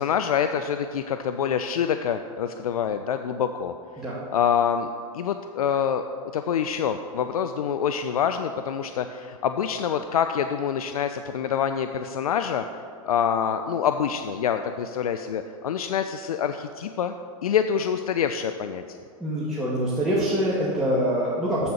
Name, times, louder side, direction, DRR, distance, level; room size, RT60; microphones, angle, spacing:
voice 1, 0.0-3.7 4.3-4.9 5.1-6.0 6.3-12.6 13.0-17.1 17.4-18.8, left 8 dB, 80° left, 8 dB, 0.4 m, -26 dB
voice 2, 19.2-21.7, equal, ahead, -9 dB, 2.1 m, -25 dB
7.7 x 7.0 x 6.7 m, 2.3 s
hypercardioid pair, 95°, 19 cm